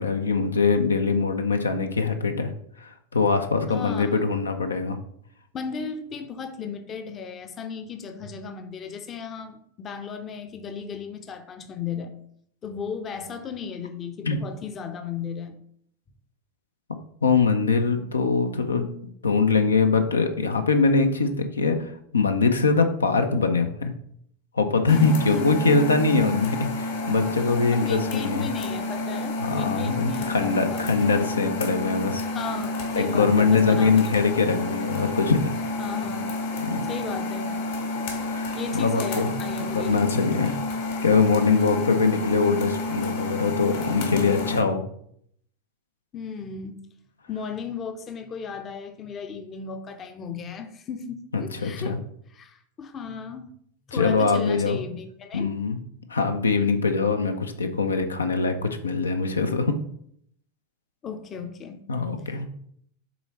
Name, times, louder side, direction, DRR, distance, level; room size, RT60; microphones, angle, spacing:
voice 1, 0.0-2.5 2.8-5.0 14.2-14.4 17.2-18.9 19.2-23.9 24.5-28.5 29.4-32.2 33.0-35.5 36.7-36.9 38.2-39.3 39.7-40.6 41.0-44.8 51.3-52.0 53.9-54.8 55.3-55.8 56.1-59.8 61.9-62.5, left 4 dB, 75° left, 7 dB, 0.6 m, -23 dB
voice 2, 3.7-4.3 5.5-12.1 12.6-15.5 24.9-25.6 27.7-30.9 32.3-34.0 35.8-36.3 36.9-37.6 38.5-40.0 41.8-41.9 46.1-46.8 47.3-52.0 52.3-53.5 53.9-55.5 61.0-61.8, left 6 dB, 25° left, 8 dB, 0.7 m, -35 dB
sound 1, 24.9-44.6, left 2 dB, 55° left, 1.3 m, -30 dB
7.0 x 3.8 x 4.2 m, 0.68 s
figure-of-eight pair, 90°, 0 cm